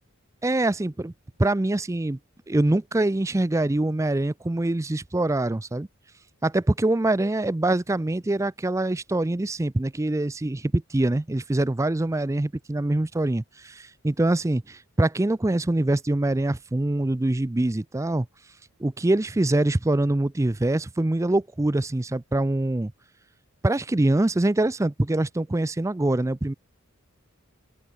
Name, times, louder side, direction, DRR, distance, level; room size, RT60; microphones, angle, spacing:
voice 1, 0.4-1.1 1.4-2.2 2.5-5.9 6.4-18.3 18.8-22.9 23.6-26.5, right 2 dB, 15° right, 0.4 m, -24 dB
open air
head